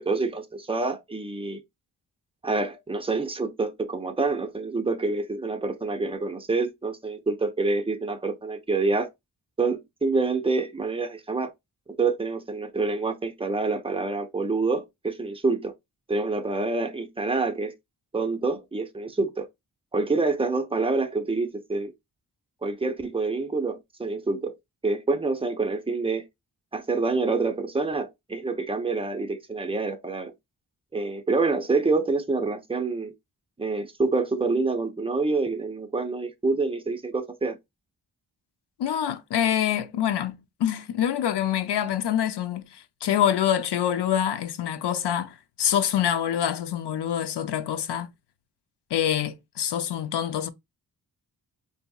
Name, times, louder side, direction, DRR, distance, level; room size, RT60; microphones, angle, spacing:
voice 1, 0.0-1.6 2.4-9.1 9.6-11.5 12.0-15.7 16.1-17.7 18.1-19.5 19.9-21.9 22.6-24.5 24.8-26.3 26.7-30.3 30.9-33.1 33.6-37.6, right 3 dB, 15° right, 0.5 m, -27 dB
voice 2, 38.8-48.1 48.9-50.5, left 10 dB, 75° left, 0.6 m, -26 dB
3.9 x 2.7 x 2.3 m
wide cardioid pair, 110°, 41 cm